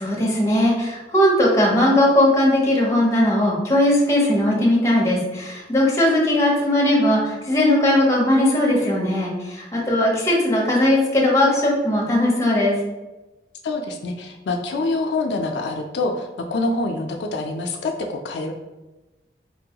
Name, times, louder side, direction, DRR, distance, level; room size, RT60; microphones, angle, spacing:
voice 1, 0.0-12.8, left 1 dB, 15° left, -3 dB, 0.7 m, -18 dB
voice 2, 13.6-18.5, left 2 dB, 80° left, 3 dB, 0.4 m, -26 dB
4.5 x 2.2 x 2.8 m, 1.1 s
head